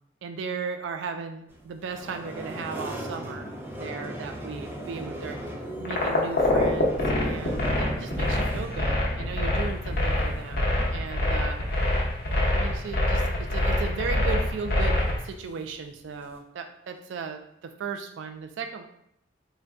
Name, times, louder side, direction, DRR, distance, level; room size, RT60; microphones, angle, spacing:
voice 1, 0.2-3.5 3.7-5.4 5.8-10.6 10.9-11.6 12.5-18.8, right 5 dB, 80° right, 7 dB, 0.3 m, -36 dB
sound 1, 1.5-16.4, right 1 dB, 10° right, 0.4 m, -41 dB
sound 2, 5.8-15.2, left 1 dB, 55° left, 0.8 m, -25 dB
3.9 x 2.1 x 3.5 m, 0.73 s
head